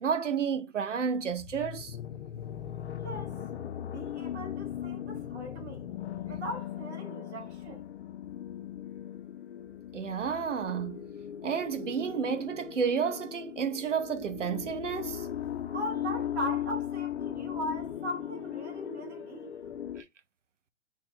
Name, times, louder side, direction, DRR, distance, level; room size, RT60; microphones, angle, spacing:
voice 1, 0.0-2.0 9.9-11.1 11.4-15.3 20.0-20.1, right 6 dB, 85° right, 0.7 m, -31 dB
sound 1, 1.3-20.0, left 10 dB, 65° left, 0.6 m, -38 dB
voice 2, 3.0-3.3 3.8-5.8 6.3-7.9 15.7-19.5, right 1 dB, 65° right, 1.5 m, -39 dB
3.1 x 2.3 x 4.2 m
figure-of-eight pair, 115°, 36 cm